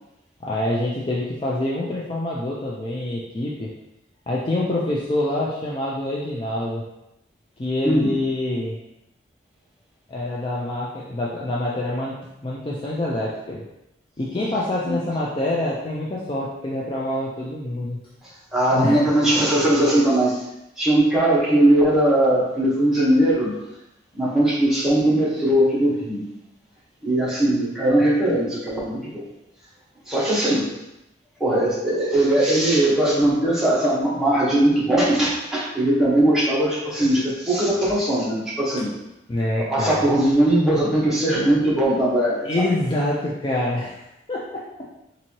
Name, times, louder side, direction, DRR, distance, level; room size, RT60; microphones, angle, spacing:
voice 1, 0.4-3.7 4.3-6.8 7.6-8.8 10.1-13.6 14.2-18.0 18.7-19.0 39.3-40.1 42.4-44.0 44.3-44.6, left 1 dB, 30° left, -5 dB, 0.4 m, -26 dB
voice 2, 18.5-20.4 20.8-23.5 24.2-26.2 27.0-29.2 30.1-30.6 31.4-38.9 39.6-42.6, right 1 dB, ahead, -8 dB, 1.2 m, -20 dB
4.1 x 2.7 x 3.0 m, 0.87 s
head